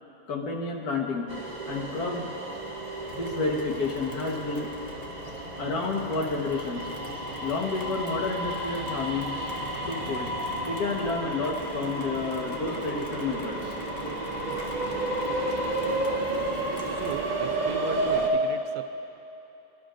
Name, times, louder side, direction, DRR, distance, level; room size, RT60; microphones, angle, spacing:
voice 1, 0.3-1.3 1.7-2.3 3.1-4.7 5.6-6.9 7.4-9.6 9.9-10.3 10.7-13.8 14.1-14.2, left 3 dB, 75° left, 0 dB, 1.9 m, -30 dB
sound 1, 1.3-18.3, right 2 dB, 30° right, 1.3 m, -32 dB
Rain, 3.1-17.3, left 2 dB, 30° left, 0.9 m, -46 dB
voice 2, 16.8-18.8, right 8 dB, 80° right, 10 dB, 1.1 m, -38 dB
26.5 x 11.5 x 2.6 m, 2.9 s
omnidirectional pair, 1.6 m